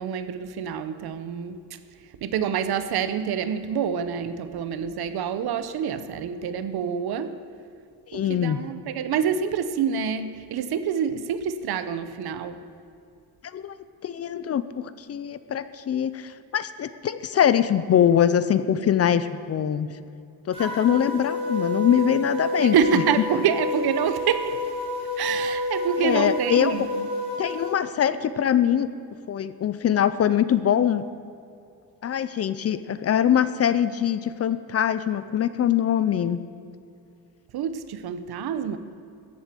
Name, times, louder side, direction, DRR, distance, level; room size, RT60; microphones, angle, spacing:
voice 1, 0.0-1.6 2.2-7.4 8.1-12.6 22.6-24.6 25.2-27.1 37.5-38.8, right 7 dB, 75° right, 11 dB, 0.9 m, -27 dB
voice 2, 8.1-8.6 13.4-13.8 14.0-19.9 20.5-23.0 26.0-26.9 27.4-28.9 29.3-31.1 32.0-36.4, left 9 dB, 40° left, 14 dB, 0.5 m, -23 dB
sound 1, 20.5-27.7, left 1 dB, 15° right, 3.8 m, -29 dB
13.5 x 8.4 x 7.6 m, 2.5 s
cardioid pair, 170°, 38 cm